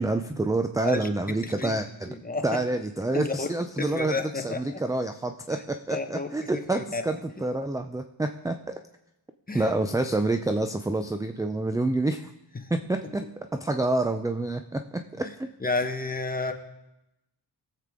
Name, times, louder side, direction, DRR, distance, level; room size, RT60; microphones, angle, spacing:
voice 1, 0.0-2.1 2.4-8.7 9.5-12.3 12.7-15.3, right 2 dB, 10° right, 7 dB, 0.4 m, -28 dB
voice 2, 1.4-2.6 3.1-3.5 3.8-4.8 5.5-5.6 5.9-7.0 9.5-9.7 12.5-12.7 15.2-15.3 15.6-16.5, left 3 dB, 20° left, 5 dB, 1.1 m, -32 dB
18.5 x 7.5 x 3.7 m, 0.90 s
wide cardioid pair, 95°, 47 cm